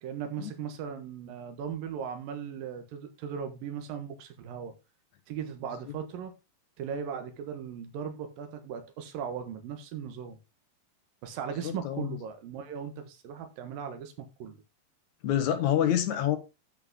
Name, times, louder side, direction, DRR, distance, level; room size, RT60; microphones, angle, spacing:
voice 1, 0.0-4.7 5.3-6.3 6.8-10.4 11.2-14.6, right 7 dB, 75° right, 3.1 m, -38 dB
voice 2, 11.5-12.2 15.2-16.4, left 10 dB, 60° left, 2.3 m, -27 dB
12.5 x 5.6 x 3.7 m
omnidirectional pair, 4.2 m